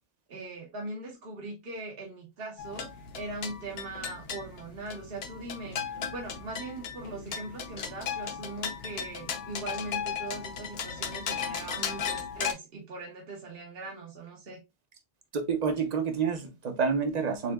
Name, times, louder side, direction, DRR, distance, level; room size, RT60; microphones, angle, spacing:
voice 1, 0.3-14.6, right 2 dB, 60° right, 1.3 m, -40 dB
sound 1, 2.6-12.5, left 7 dB, 70° left, 0.9 m, -36 dB
voice 2, 15.3-17.5, right 5 dB, 40° right, 0.9 m, -28 dB
7.0 x 2.7 x 2.3 m
omnidirectional pair, 1.1 m